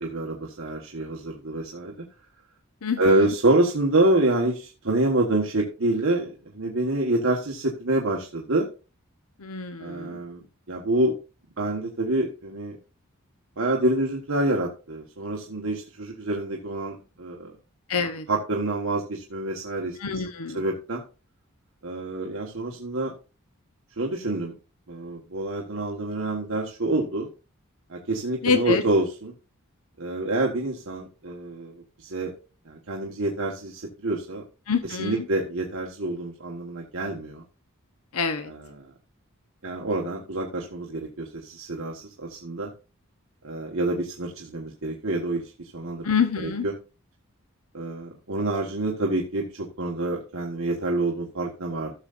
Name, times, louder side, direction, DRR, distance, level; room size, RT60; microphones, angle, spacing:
voice 1, 0.0-1.9 3.0-8.7 9.8-11.1 11.6-12.8 13.6-17.5 18.3-20.0 20.5-21.0 21.8-23.1 24.0-24.5 24.9-27.3 27.9-29.3 30.0-31.7 32.0-32.3 32.7-34.4 35.0-37.4 39.6-42.7 43.4-46.0 46.4-46.7 47.7-51.9, right 2 dB, 70° right, -1 dB, 1.5 m, -27 dB
voice 2, 2.8-3.3 9.4-10.2 17.9-18.3 20.0-20.7 28.4-28.8 34.7-35.3 38.1-38.5 46.0-46.7, left 5 dB, 80° left, 8 dB, 0.9 m, -26 dB
16.0 x 6.8 x 2.6 m, 0.33 s
head